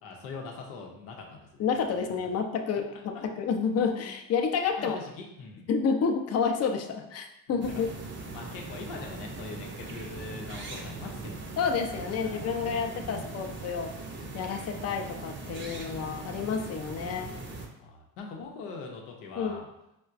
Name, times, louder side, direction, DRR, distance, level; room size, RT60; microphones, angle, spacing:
voice 1, 0.0-1.7 3.1-3.3 4.8-5.7 7.5-7.6 8.3-11.5 12.0-13.4 17.8-19.7, left 4 dB, 90° left, 1 dB, 0.7 m, -42 dB
voice 2, 1.6-5.0 5.7-7.9 11.6-13.9 14.3-17.4 19.4-19.6, left 6 dB, 40° left, 4 dB, 0.5 m, -29 dB
sound 1, 7.6-17.7, right 3 dB, 30° right, 0.6 m, -40 dB
4.5 x 2.2 x 2.4 m, 0.85 s
supercardioid pair, 75°, 40 cm